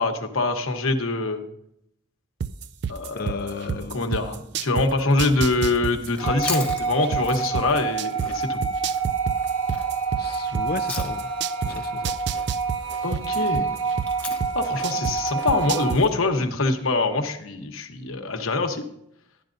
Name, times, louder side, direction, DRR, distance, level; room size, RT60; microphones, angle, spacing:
voice 1, 0.0-1.4 2.9-8.6 13.0-13.7 14.5-18.8, left 3 dB, 80° left, 5 dB, 1.1 m, -24 dB
sound 1, 2.4-4.9 5.2-8.3 8.6-11.7 12.0-15.1 15.5-16.0, right 7 dB, 55° right, 0.4 m, -28 dB
voice 2, 3.1-4.1 10.1-11.3 11.6-12.1, left 4 dB, 45° left, 13 dB, 0.4 m, -34 dB
Chewing mastication, 6.1-11.4 11.7-16.1, left 3 dB, 5° left, 1.1 m, -39 dB
sound 2, 6.2-15.9, right 5 dB, 90° right, 1.3 m, -27 dB
12.0 x 11.0 x 2.6 m, 0.75 s
head